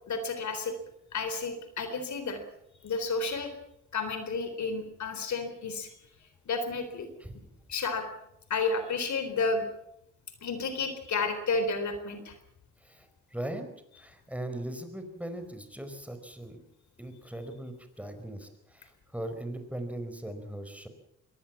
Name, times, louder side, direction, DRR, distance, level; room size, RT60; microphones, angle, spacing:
voice 1, 0.1-0.8 1.1-2.4 2.8-3.5 3.9-6.0 6.5-7.1 7.7-8.1 8.5-9.6 10.4-12.3, left 4 dB, 65° left, 9 dB, 3.9 m, -31 dB
voice 2, 12.8-13.7 13.9-16.6 17.0-20.9, right 1 dB, 5° right, 7 dB, 4.8 m, -39 dB
23.0 x 18.5 x 7.3 m, 0.79 s
cardioid pair, 85°, 31 cm